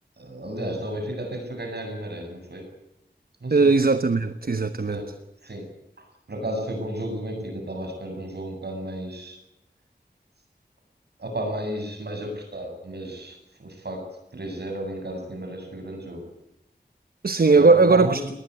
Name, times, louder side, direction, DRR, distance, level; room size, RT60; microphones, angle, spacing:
voice 1, 0.2-2.7 3.4-3.7 4.9-5.1 5.4-5.6 6.0-9.4 11.2-16.3 17.5-18.3, right 1 dB, 80° right, 8.0 m, -33 dB
voice 2, 3.5-5.0 17.2-18.2, right 3 dB, 60° right, 1.1 m, -18 dB
21.0 x 19.5 x 8.2 m
wide cardioid pair, 70°, 17 cm